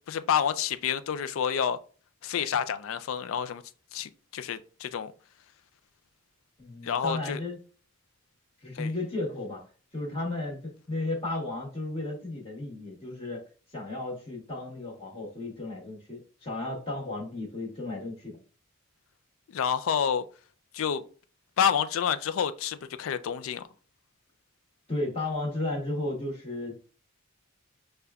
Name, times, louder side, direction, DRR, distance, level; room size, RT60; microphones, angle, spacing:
voice 1, 0.1-1.8 2.2-3.6 3.9-5.1 6.8-7.4 8.7-8.9 19.5-20.3 20.7-21.0 21.6-23.7, left 8 dB, 75° left, 0.4 m, -28 dB
voice 2, 6.6-7.6 8.6-9.6 9.9-13.4 13.7-18.4 24.9-26.9, left 2 dB, 30° left, 1.2 m, -34 dB
6.5 x 2.2 x 2.3 m
head